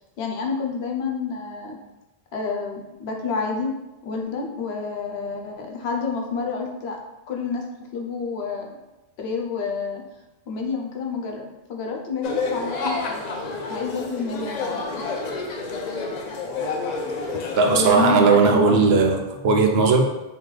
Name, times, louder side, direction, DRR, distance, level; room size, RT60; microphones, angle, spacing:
voice 1, 0.2-1.8 2.3-3.7 4.0-7.0 7.3-7.6 7.9-8.8 9.2-10.0 10.5-13.2 13.7-15.0 17.6-18.8, left 4 dB, 75° left, 1 dB, 0.9 m, -29 dB
sound 1, 12.2-17.9, left 3 dB, 55° left, 0.5 m, -29 dB
voice 2, 17.6-20.0, right 4 dB, 75° right, 3 dB, 0.8 m, -17 dB
3.8 x 3.0 x 3.1 m, 0.99 s
omnidirectional pair, 1.1 m